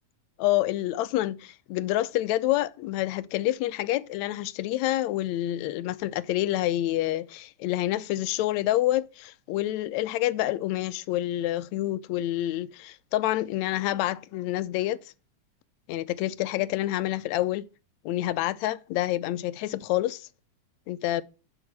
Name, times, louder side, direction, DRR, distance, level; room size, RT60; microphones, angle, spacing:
voice 1, 0.4-15.0 15.9-17.7 18.0-20.3 20.9-21.2, left 15 dB, 75° left, 1.8 m, -28 dB
7.9 x 7.2 x 8.2 m
omnidirectional pair, 3.5 m